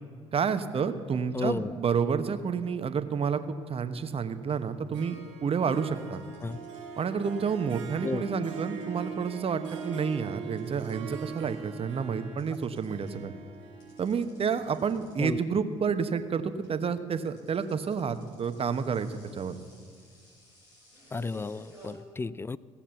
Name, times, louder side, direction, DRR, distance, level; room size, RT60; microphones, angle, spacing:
voice 1, 0.3-3.4 3.7-6.2 7.0-13.3 14.0-19.6, right 6 dB, 40° right, 10 dB, 1.0 m, -30 dB
voice 2, 1.3-1.7 6.4-6.6 8.0-8.2 15.2-15.4 21.1-22.6, left 3 dB, 15° left, 20 dB, 0.4 m, -32 dB
sound 1, 3.9-4.2 4.5-5.4 6.1-11.5 11.8-21.9, equal, 80° left, 4.5 m, -57 dB
Harp, 4.9-16.4, right 6 dB, 85° right, 2.2 m, -43 dB
17.0 x 7.2 x 6.9 m, 2.1 s
hypercardioid pair, 55°, 15 cm